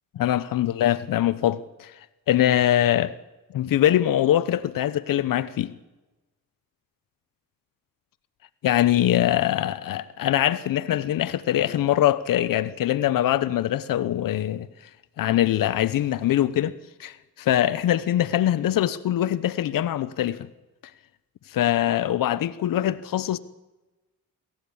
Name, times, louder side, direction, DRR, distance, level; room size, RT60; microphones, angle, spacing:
voice 1, 0.1-1.9 2.3-3.1 3.5-5.7 8.6-14.7 15.2-20.5 21.5-23.4, left 12 dB, 70° left, 0.9 m, -23 dB
26.0 x 14.5 x 8.6 m
cardioid pair, 105°, 34 cm